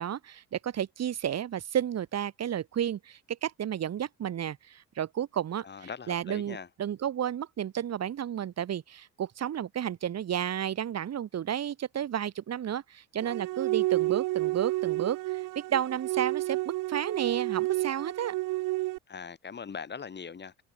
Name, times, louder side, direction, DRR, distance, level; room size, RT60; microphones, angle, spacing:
voice 1, 0.0-18.3, right 10 dB, 50° right, 7.4 m, -32 dB
voice 2, 5.6-6.7 19.1-20.6, left 6 dB, 35° left, 5.9 m, -41 dB
sound 1, 13.2-19.0, right 19 dB, 80° right, 1.0 m, -30 dB
cardioid pair, 115°, 32 cm